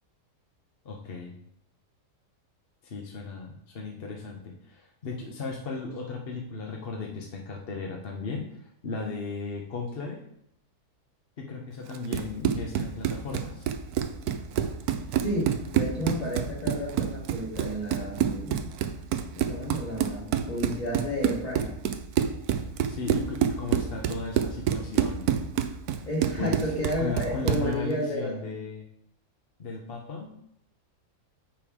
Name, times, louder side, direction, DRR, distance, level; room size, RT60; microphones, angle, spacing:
voice 1, 0.8-1.3 2.8-10.2 11.4-13.7 22.9-25.3 26.4-26.6 27.0-28.8 29.6-30.3, left 4 dB, 45° left, 0 dB, 0.9 m, -36 dB
Run, 11.9-27.7, right 9 dB, 70° right, 1.1 m, -28 dB
voice 2, 15.2-18.6 19.4-21.8 26.0-28.4, equal, 25° left, -6 dB, 1.6 m, -31 dB
7.0 x 5.9 x 4.9 m, 0.74 s
omnidirectional pair, 1.8 m